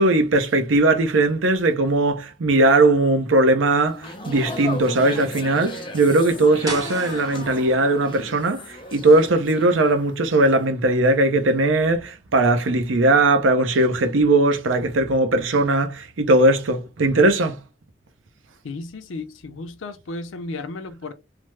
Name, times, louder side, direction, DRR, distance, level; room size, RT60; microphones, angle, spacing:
voice 1, 0.0-17.6, right 2 dB, 90° right, 0.6 m, -19 dB
sound 1, 3.9-10.1 10.4-10.7, left 2 dB, 25° left, 0.6 m, -36 dB
sound 2, 6.7-12.3, right 2 dB, 20° right, 0.8 m, -40 dB
voice 2, 18.6-21.1, left 3 dB, 90° left, 0.5 m, -34 dB
3.3 x 2.0 x 3.2 m
head